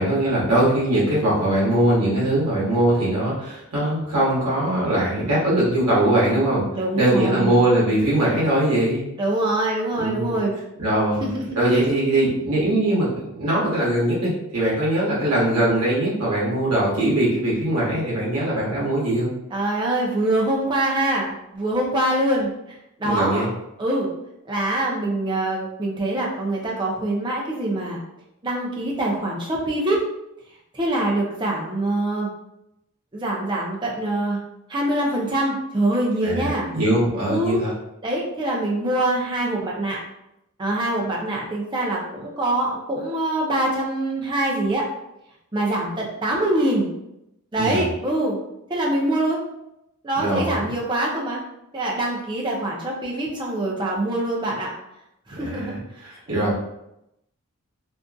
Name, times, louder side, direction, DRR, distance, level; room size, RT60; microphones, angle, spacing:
voice 1, 0.0-6.6 6.9-9.0 9.9-10.4 10.8-19.3 23.0-23.5 36.2-37.7 47.6-47.9 50.2-50.7 55.4-56.6, right 1 dB, 85° right, -7 dB, 0.9 m, -21 dB
voice 2, 6.7-7.6 9.2-10.5 11.2-11.5 19.5-22.5 23.0-23.4 23.8-24.1 24.5-28.0 28.4-30.0 30.7-32.3 33.1-34.4 34.7-36.7 37.3-37.6 38.0-40.0 40.6-44.8 45.5-46.9 47.5-48.4 48.7-49.4 50.0-51.4 51.7-54.7 55.3-55.7 56.3-56.6, right 1 dB, 20° right, -3 dB, 0.5 m, -24 dB
2.5 x 2.4 x 2.3 m, 0.84 s
head